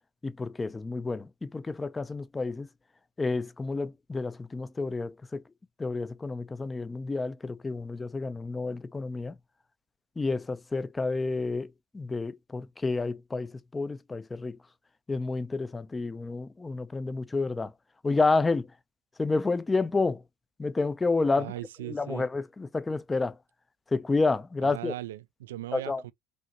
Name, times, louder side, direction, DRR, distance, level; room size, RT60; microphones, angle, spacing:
voice 1, 0.2-2.7 3.2-5.4 5.8-9.4 10.2-14.6 15.1-17.7 18.0-18.7 19.2-20.2 20.6-21.5 21.8-23.4 23.9-24.9 25.7-26.0, left 3 dB, 20° left, 0.6 m, -30 dB
voice 2, 21.4-22.3 24.6-26.1, right 15 dB, 85° right, 0.4 m, -39 dB
5.2 x 3.1 x 2.9 m
hypercardioid pair, 80°, 0 cm